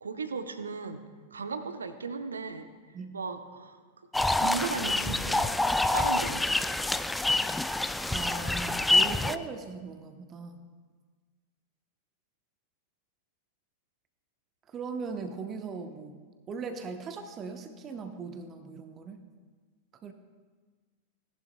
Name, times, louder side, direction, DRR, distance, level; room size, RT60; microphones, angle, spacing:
voice 1, 0.0-1.0 1.3-4.1 4.4-5.6 5.9-6.4, right 4 dB, 70° right, 9 dB, 0.8 m, -36 dB
sound 1, 4.1-9.4, left 2 dB, 5° left, 0.3 m, -27 dB
voice 2, 8.1-10.6 14.7-19.2 20.0-20.1, right 4 dB, 25° right, 7 dB, 0.9 m, -39 dB
18.0 x 11.0 x 2.2 m, 1.5 s
figure-of-eight pair, 90°, 0 cm